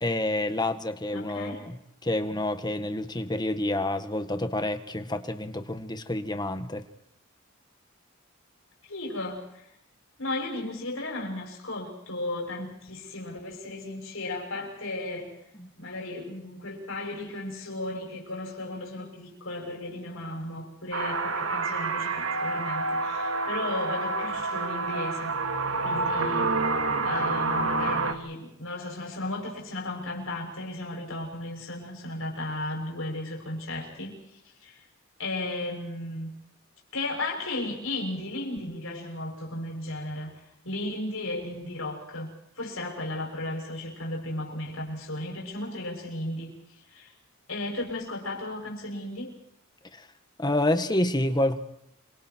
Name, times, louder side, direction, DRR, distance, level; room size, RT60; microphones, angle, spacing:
voice 1, 0.0-6.8 15.5-15.7 49.9-50.1 50.4-51.6, left 1 dB, 20° left, 8 dB, 1.7 m, -28 dB
voice 2, 1.1-1.6 8.9-9.7 10.2-15.3 15.8-25.4 25.8-26.5 27.0-34.2 34.6-34.8 35.2-36.3 36.9-42.3 42.6-46.5 46.9-47.1 47.5-49.3, left 2 dB, 70° left, 0 dB, 7.0 m, -35 dB
sound 1, 20.9-28.1, right 3 dB, 65° right, 2.5 m, -28 dB
28.0 x 26.5 x 4.7 m, 0.79 s
head